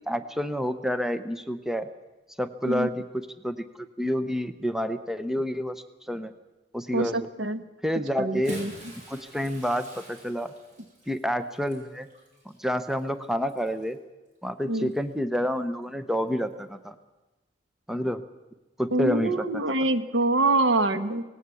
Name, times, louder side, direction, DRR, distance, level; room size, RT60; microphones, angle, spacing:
voice 1, 0.0-1.9 2.4-3.6 4.0-6.3 6.7-7.3 7.8-8.6 9.1-10.5 11.1-12.1 12.6-14.0 14.4-16.9 17.9-18.2 18.8-19.5, equal, ahead, 11 dB, 0.7 m, -29 dB
voice 2, 6.9-7.6 8.2-8.7 14.7-14.9 18.9-21.2, right 2 dB, 85° right, 11 dB, 1.1 m, -25 dB
Bathtub (filling or washing) / Splash splatter, 8.2-13.9 14.8-15.0 16.4-16.5, right 1 dB, 40° right, 5.7 m, -48 dB
18.5 x 17.0 x 8.3 m, 1.1 s
head